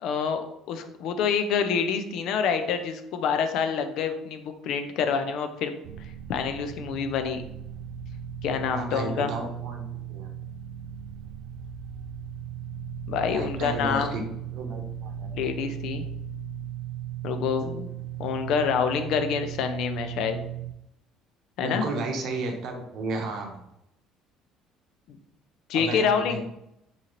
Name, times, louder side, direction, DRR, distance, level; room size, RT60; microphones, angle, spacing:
voice 1, 0.0-5.7 6.3-7.4 8.4-9.3 13.1-14.2 15.3-16.1 17.2-17.9 18.2-20.4 21.6-21.8 25.1-25.2 25.7-26.4, left 6 dB, 65° left, 8 dB, 0.4 m, -27 dB
sound 1, 5.8-20.7, right 9 dB, 80° right, 0.3 m, -37 dB
voice 2, 8.7-10.3 13.3-14.2 14.5-15.3 21.6-23.6 25.7-26.4, right 3 dB, 60° right, 3 dB, 0.8 m, -33 dB
3.0 x 2.8 x 3.8 m, 0.81 s
cardioid pair, 130°, 0 cm